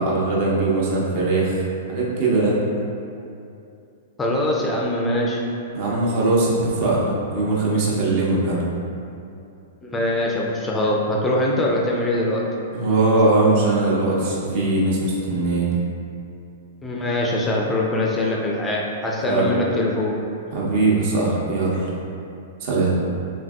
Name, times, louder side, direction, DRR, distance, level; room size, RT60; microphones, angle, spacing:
voice 1, 0.0-1.5 1.9-2.6 5.7-8.6 12.7-15.7 19.2-19.5 20.5-21.8 22.6-22.9, right 2 dB, 50° right, -5 dB, 0.7 m, -20 dB
voice 2, 4.2-5.4 9.8-12.4 16.8-20.1, left 1 dB, 15° left, -3 dB, 0.3 m, -22 dB
3.3 x 2.5 x 2.3 m, 2.6 s
figure-of-eight pair, 105°, 0 cm